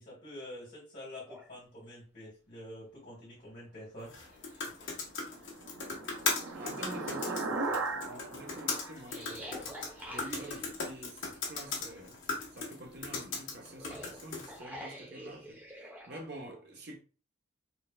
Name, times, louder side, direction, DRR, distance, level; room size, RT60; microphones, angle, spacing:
voice 1, 0.0-4.1, left 1 dB, 40° left, 2.1 m, -47 dB
sound 1, 1.3-1.5 3.3-3.4 3.8-4.9 5.4-5.5 6.1-7.3 9.1-10.8 13.6-16.2, equal, 10° right, 1.0 m, -47 dB
sound 2, 4.0-14.6, left 4 dB, 65° left, 1.3 m, -38 dB
sound 3, 5.1-9.9, right 3 dB, 85° right, 0.6 m, -38 dB
voice 2, 6.5-9.7 10.1-17.0, right 1 dB, 55° right, 1.0 m, -47 dB
4.3 x 3.4 x 2.3 m
head